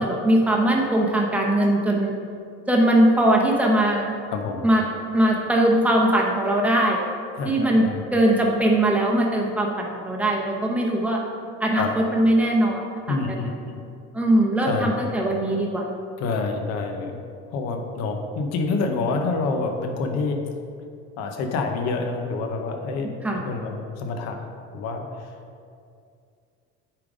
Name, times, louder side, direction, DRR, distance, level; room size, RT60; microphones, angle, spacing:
voice 1, 0.0-2.1 2.7-4.1 4.6-4.8 5.1-7.0 7.4-7.8 8.1-11.2 11.6-13.2 14.1-15.8 23.2-23.4, right 1 dB, 5° right, -1 dB, 0.8 m, -20 dB
voice 2, 4.3-4.7 7.4-8.0 11.8-11.9 13.1-13.8 14.7-14.9 16.2-17.2 17.5-20.4 21.2-24.5 24.7-25.4, left 3 dB, 60° left, 4 dB, 0.9 m, -27 dB
8.8 x 3.8 x 5.0 m, 2.4 s
cardioid pair, 155°, 30 cm